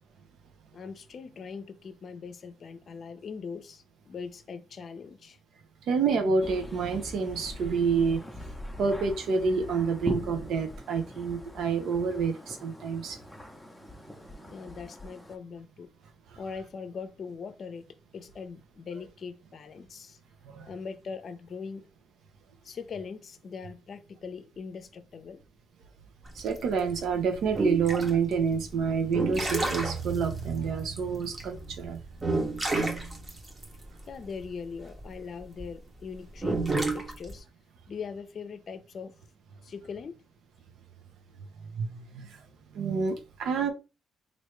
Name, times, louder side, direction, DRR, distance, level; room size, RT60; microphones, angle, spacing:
voice 1, 0.7-5.4 14.5-15.9 16.4-20.2 20.6-21.9 22.6-25.4 34.1-37.5 37.9-39.1 39.6-40.2, left 5 dB, 50° left, 0.6 m, -41 dB
voice 2, 5.9-8.2 8.8-13.2 20.5-20.7 26.3-32.0 41.8-42.3 42.7-43.7, right 5 dB, 75° right, 0.7 m, -28 dB
sound 1, 6.4-15.4, equal, 5° left, 0.7 m, -41 dB
sound 2, 26.2-35.7 36.3-37.4, right 2 dB, 25° right, 1.0 m, -31 dB
3.2 x 2.6 x 3.1 m
cardioid pair, 90°, 0 cm